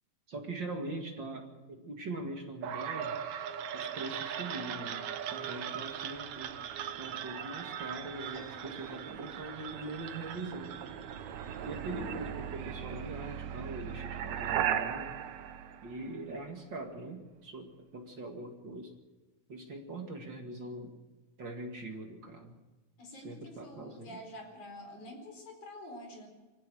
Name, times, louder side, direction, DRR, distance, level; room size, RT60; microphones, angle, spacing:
voice 1, 0.3-3.2 3.7-5.1 5.3-6.6 7.0-10.8 11.6-15.2 15.8-18.9 19.5-20.9 21.4-22.6 23.1-24.2, right 2 dB, 35° right, 2 dB, 2.3 m, -42 dB
sound 1, 2.6-16.5, right 9 dB, 65° right, 2.1 m, -38 dB
voice 2, 23.0-26.3, left 1 dB, 55° left, 3 dB, 5.9 m, -47 dB
24.5 x 17.0 x 6.4 m, 1.2 s
omnidirectional pair, 4.2 m